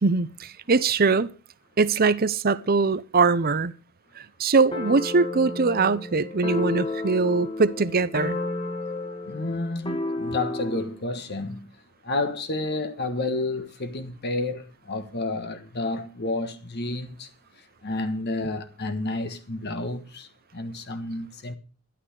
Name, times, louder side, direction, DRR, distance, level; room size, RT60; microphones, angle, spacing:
voice 1, 0.0-1.3 1.8-3.7 4.2-8.4, right 4 dB, 40° right, 0.7 m, -22 dB
sound 1, 4.7-10.9, left 2 dB, 25° left, 1.8 m, -32 dB
voice 2, 9.3-11.7 12.0-17.3 17.8-21.6, left 2 dB, 50° left, 1.4 m, -30 dB
12.0 x 11.0 x 4.8 m
head